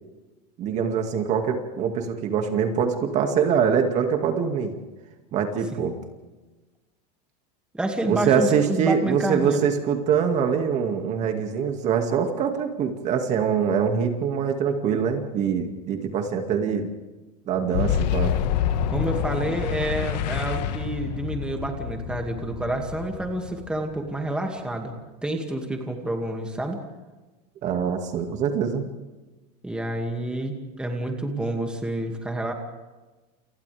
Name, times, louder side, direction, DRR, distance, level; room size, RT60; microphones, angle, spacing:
voice 1, 0.6-4.7 5.3-5.9 8.1-16.9 17.5-18.3 27.6-28.9, right 7 dB, 35° right, 4 dB, 2.2 m, -24 dB
voice 2, 7.7-9.6 18.9-24.9 25.2-26.8 29.6-32.5, right 1 dB, 5° right, 2 dB, 2.3 m, -29 dB
Boom, 17.7-24.3, left 9 dB, 75° left, 1.7 m, -27 dB
29.5 x 29.0 x 3.5 m, 1.2 s
supercardioid pair, 160°, 21 cm